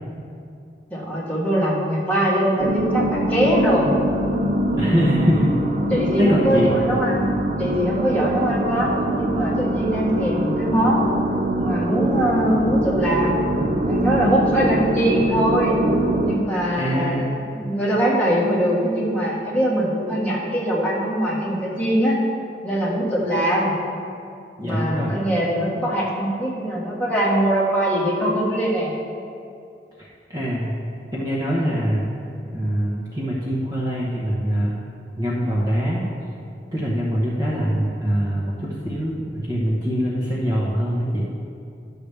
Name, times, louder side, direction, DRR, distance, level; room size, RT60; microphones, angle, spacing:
voice 1, 0.9-3.9 4.7-5.0 5.9-7.2 7.6-11.1 11.6-13.4 13.8-15.8 16.2-22.2 22.6-23.7 24.6-28.9, right 1 dB, 10° left, -7 dB, 1.7 m, -22 dB
sound 1, 2.6-16.4, right 1 dB, 40° right, 0.5 m, -23 dB
voice 2, 4.8-5.5 6.2-6.8 16.8-17.3 24.6-25.1 30.0-30.7 31.1-32.0 32.4-34.7 35.2-36.0 36.7-41.3, equal, 20° right, -6 dB, 1.0 m, -23 dB
11.5 x 6.6 x 3.4 m, 2.6 s
head